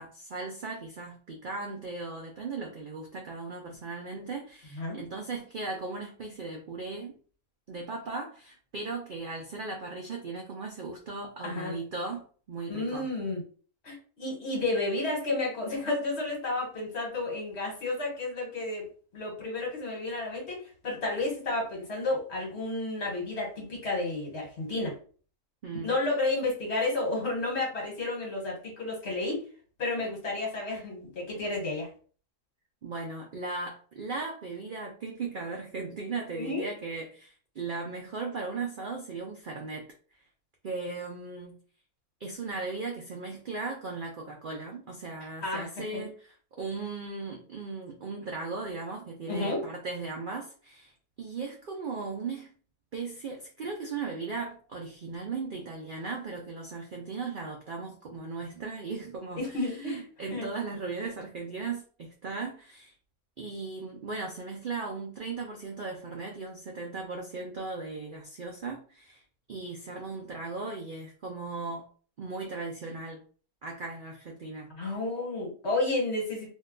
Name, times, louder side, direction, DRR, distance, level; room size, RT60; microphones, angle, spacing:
voice 1, 0.0-7.2 7.7-13.1 25.6-26.0 32.8-39.8 40.6-41.6 42.2-52.5 52.9-62.9 63.4-69.2 69.5-71.8 72.2-73.2 73.6-74.7, right 4 dB, 70° right, 1 dB, 0.4 m, -37 dB
voice 2, 11.4-11.7 12.7-13.4 13.8-18.9 19.1-24.9 25.8-29.4 29.8-31.9 36.3-36.6 45.4-46.1 49.3-49.6 59.4-60.0 60.3-60.5 74.7-76.5, left 2 dB, 50° left, -1 dB, 1.4 m, -31 dB
2.8 x 2.2 x 3.7 m, 0.41 s
omnidirectional pair, 1.6 m